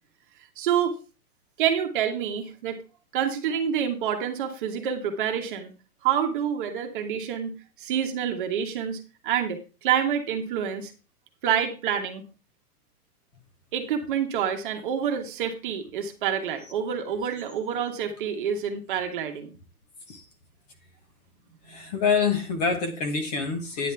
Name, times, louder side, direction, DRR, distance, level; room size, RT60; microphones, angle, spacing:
voice 1, 0.6-1.0 1.6-2.8 3.1-5.7 6.0-10.9 11.4-12.2 13.7-19.5, right 8 dB, 35° right, 4 dB, 1.4 m, -27 dB
voice 2, 21.7-23.9, left 5 dB, 25° left, 7 dB, 1.2 m, -26 dB
10.0 x 9.2 x 3.4 m, 0.31 s
hypercardioid pair, 170°, 47 cm